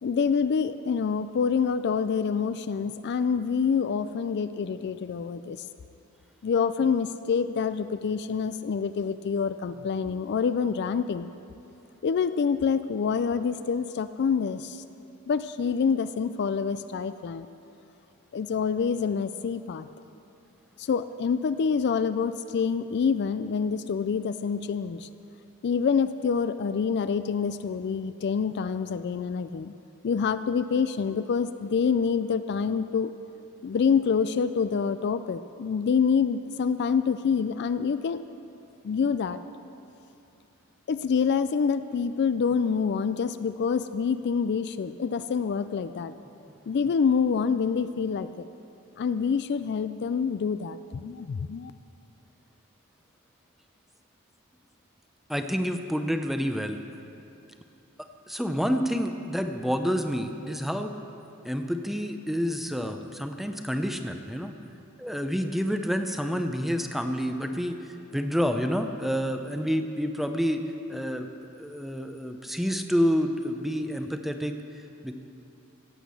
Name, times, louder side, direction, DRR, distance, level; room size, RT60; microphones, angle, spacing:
voice 1, 0.0-5.6 6.4-11.3 12.0-14.8 15.3-17.5 18.3-19.9 20.8-25.1 25.6-29.7 30.0-33.1 33.6-38.2 38.8-39.4 40.9-46.1 46.7-48.5 49.0-51.7, left 6 dB, 50° left, 12 dB, 0.3 m, -26 dB
voice 2, 55.3-56.8 58.3-60.9 61.4-64.5 65.0-67.8 68.1-70.6 70.9-71.3 71.6-74.6 75.0-75.1, equal, ahead, 6 dB, 0.6 m, -28 dB
16.5 x 8.1 x 6.9 m, 2.8 s
head